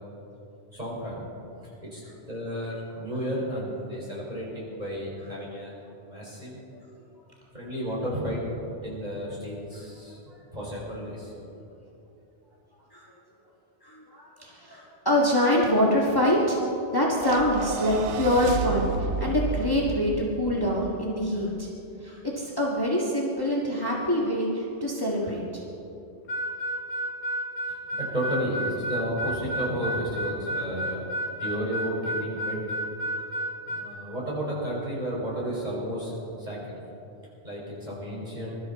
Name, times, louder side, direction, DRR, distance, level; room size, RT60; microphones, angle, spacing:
voice 1, 0.7-1.2 1.8-2.0 2.3-5.7 6.1-6.6 7.5-8.4 8.8-10.2 10.5-11.3 27.7-32.6 33.7-36.8 37.4-38.6, equal, 35° right, -6 dB, 5.1 m, -32 dB
voice 2, 13.8-16.6 16.9-21.7 22.0-25.6, left 1 dB, 20° left, -4 dB, 1.7 m, -25 dB
sound 1, 17.2-21.6, right 6 dB, 80° right, 1.0 m, -32 dB
Harmonica, 26.3-33.9, right 1 dB, 70° left, 1.9 m, -31 dB
22.5 x 13.0 x 4.2 m, 2.8 s
omnidirectional pair, 1.2 m